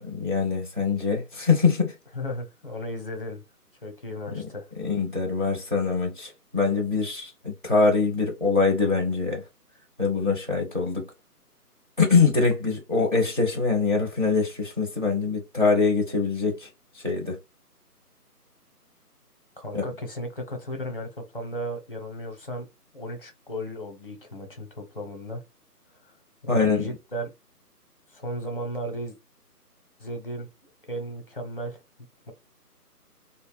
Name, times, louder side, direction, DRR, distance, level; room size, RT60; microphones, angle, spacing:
voice 1, 0.1-1.9 4.3-4.4 4.8-9.4 10.0-11.1 12.0-16.7 16.9-17.4 19.7-19.9 26.5-26.9, left 4 dB, 35° right, 0.5 m, -23 dB
voice 2, 2.1-3.4 3.8-4.7 19.6-22.7 22.9-25.4 26.4-27.3 28.1-29.2 30.0-30.5 30.9-31.8 32.3-32.4, equal, 35° left, 0.6 m, -35 dB
2.2 x 2.1 x 3.0 m
figure-of-eight pair, 160°, 47 cm